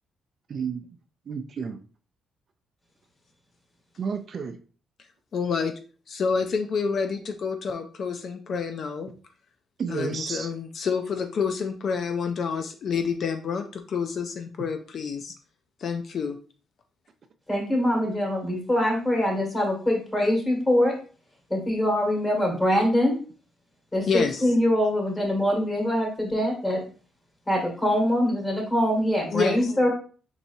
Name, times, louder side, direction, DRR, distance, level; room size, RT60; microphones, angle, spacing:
voice 1, 0.5-0.9 1.3-1.8 4.0-4.6 9.8-10.5 14.6-14.7, right 6 dB, 50° right, 7 dB, 0.5 m, -31 dB
voice 2, 5.3-5.7 6.1-9.1 9.9-15.3 15.8-16.4 24.1-24.4 29.3-29.7, left 5 dB, 55° left, 6 dB, 0.5 m, -28 dB
voice 3, 17.5-21.0 21.5-23.2 23.9-26.9 27.5-29.9, left 1 dB, 15° left, 0 dB, 2.1 m, -23 dB
4.6 x 4.0 x 2.7 m, 0.39 s
cardioid pair, 90°, 0 cm